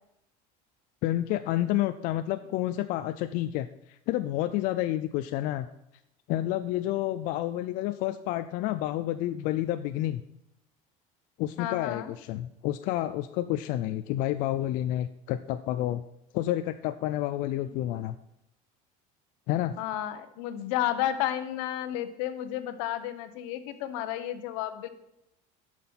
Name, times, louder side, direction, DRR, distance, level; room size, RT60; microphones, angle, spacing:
voice 1, 1.0-5.7 6.3-10.2 11.4-16.0 16.3-18.2 19.5-19.7, left 14 dB, 55° left, 11 dB, 0.4 m, -29 dB
voice 2, 11.6-12.1 17.6-17.7 19.8-24.9, left 12 dB, 80° left, 11 dB, 1.0 m, -32 dB
11.0 x 6.0 x 5.6 m, 0.84 s
cardioid pair, 160°, 17 cm